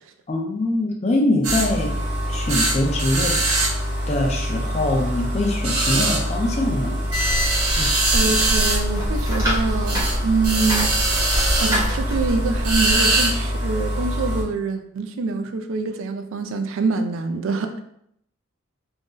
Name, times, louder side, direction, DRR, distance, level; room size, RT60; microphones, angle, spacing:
voice 1, 0.3-1.9 2.3-3.4 4.1-7.0 7.8-7.9, left 1 dB, 30° left, 1 dB, 0.4 m, -23 dB
sound 1, 1.4-14.4, right 1 dB, 85° right, 0.8 m, -23 dB
sound 2, 7.1-13.0, equal, 15° right, 0.8 m, -27 dB
voice 2, 7.7-11.0 11.2-17.8, right 4 dB, 65° right, 7 dB, 0.3 m, -25 dB
2.6 x 2.1 x 3.6 m, 0.74 s
head